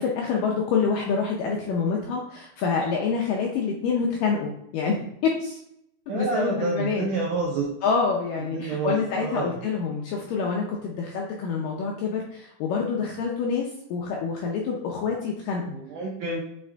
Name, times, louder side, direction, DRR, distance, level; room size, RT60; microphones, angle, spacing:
voice 1, 0.0-5.0 5.2-5.6 6.1-7.1 7.8-15.8, left 5 dB, 80° left, -1 dB, 2.0 m, -27 dB
voice 2, 6.1-7.7 8.5-9.6 15.6-16.4, right 3 dB, 80° right, -2 dB, 1.8 m, -28 dB
8.3 x 3.3 x 3.4 m, 0.77 s
omnidirectional pair, 4.7 m